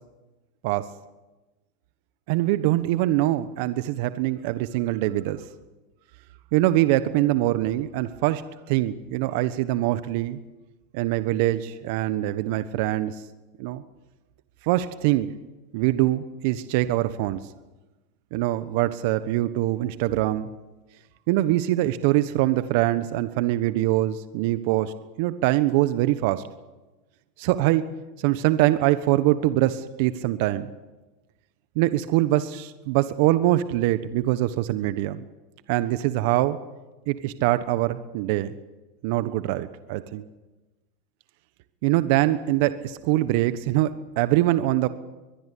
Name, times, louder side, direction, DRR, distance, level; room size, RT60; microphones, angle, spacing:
voice 1, 2.3-5.4 6.5-10.4 10.9-13.2 13.6-13.8 14.6-15.3 15.7-17.4 18.3-20.5 21.3-26.5 27.4-27.9 28.2-30.7 31.7-35.2 35.7-36.6 37.1-38.5 39.0-40.3 41.8-44.9, right 15 dB, 65° right, 13 dB, 1.2 m, -23 dB
23.5 x 22.0 x 8.5 m, 1.1 s
hypercardioid pair, 95°, 0 cm